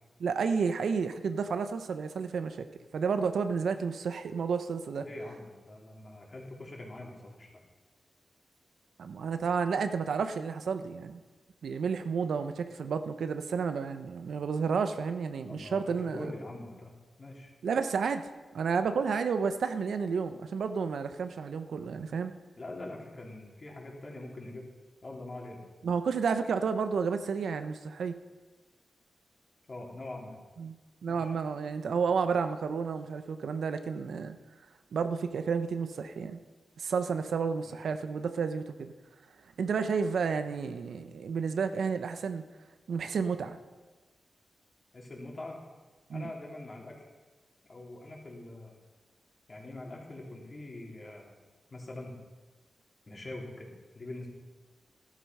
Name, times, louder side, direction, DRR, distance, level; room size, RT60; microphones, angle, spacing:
voice 1, 0.2-2.7 2.9-5.1 9.0-11.2 11.6-16.3 17.6-18.2 18.5-22.3 25.8-28.1 30.6-30.8 31.0-34.4 34.9-36.4 36.8-38.9 39.6-42.5 42.9-43.6 46.1-46.3, right 5 dB, 85° right, 9 dB, 0.8 m, -31 dB
voice 2, 5.0-7.6 15.5-15.8 16.1-17.5 22.6-24.7 25.0-25.6 29.7-30.4 31.1-31.3 37.6-37.8 44.9-45.6 46.1-47.1 47.7-48.7 49.5-51.3 51.7-52.2 53.1-54.3, left 2 dB, 40° left, -2 dB, 3.7 m, -43 dB
13.5 x 12.5 x 5.6 m, 1.3 s
cardioid pair, 85°, 0 cm